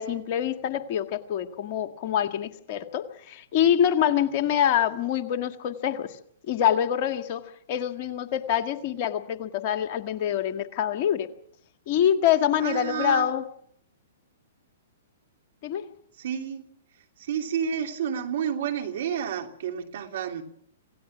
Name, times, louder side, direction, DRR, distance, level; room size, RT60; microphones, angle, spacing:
voice 1, 0.0-6.1 6.5-7.4 7.7-11.3 11.9-13.4 15.6-15.8, left 10 dB, 45° left, 8 dB, 1.8 m, -25 dB
voice 2, 12.6-13.3 16.2-16.6 17.2-20.4, right 8 dB, 60° right, 5 dB, 3.1 m, -30 dB
27.0 x 18.0 x 6.1 m, 0.68 s
figure-of-eight pair, 115°, 0 cm